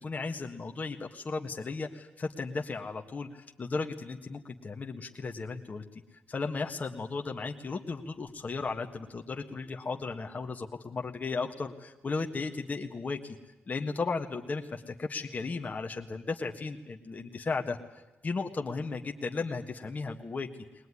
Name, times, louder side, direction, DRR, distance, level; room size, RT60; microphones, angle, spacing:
voice 1, 0.0-5.8 6.3-13.4 13.7-17.8 18.2-20.5, left 4 dB, 40° left, 3 dB, 1.6 m, -35 dB
21.0 x 20.0 x 9.9 m, 1.0 s
cardioid pair, 80°, 4 cm